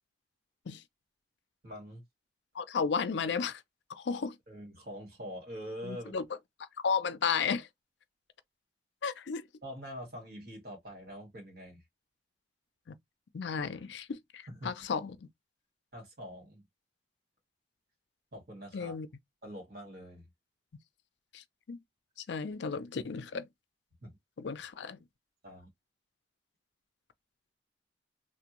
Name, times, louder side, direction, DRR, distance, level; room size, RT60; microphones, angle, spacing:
voice 1, 1.6-2.0 4.5-6.1 9.6-11.8 14.5-14.7 15.9-16.6 18.3-19.0 19.4-20.3 24.0-24.1 25.4-25.7, equal, 55° right, 1.7 m, -44 dB
voice 2, 2.5-3.6 3.9-4.4 5.8-6.2 6.6-7.7 9.0-9.4 12.9-13.0 13.3-15.2 18.7-19.1 21.3-21.8 22.3-23.4 24.4-25.0, left 5 dB, 75° left, 0.5 m, -33 dB
3.4 x 2.2 x 2.9 m
head